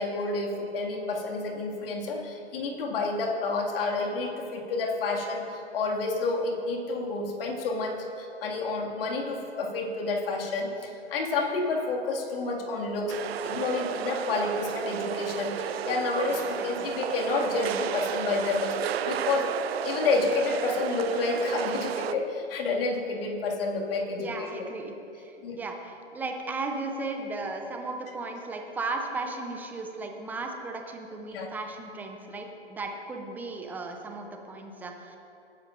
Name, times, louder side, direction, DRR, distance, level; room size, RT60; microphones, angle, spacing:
voice 1, 0.0-19.5 19.8-24.5 25.4-25.6 31.3-31.5, left 3 dB, 55° left, 0 dB, 2.1 m, -29 dB
sound 1, 13.1-22.1, right 9 dB, 60° right, 0.6 m, -32 dB
voice 2, 16.3-16.9 24.2-35.2, right 3 dB, 5° right, 3 dB, 0.5 m, -36 dB
19.0 x 10.5 x 2.5 m, 2.7 s
hypercardioid pair, 130°, 35 cm